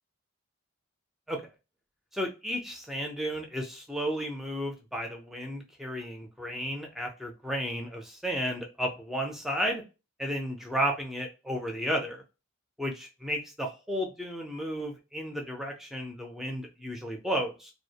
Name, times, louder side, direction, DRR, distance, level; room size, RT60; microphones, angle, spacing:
voice 1, 2.1-9.8 10.2-12.2 12.8-17.7, equal, ahead, 2 dB, 0.4 m, -33 dB
2.2 x 2.1 x 2.7 m, 0.29 s
head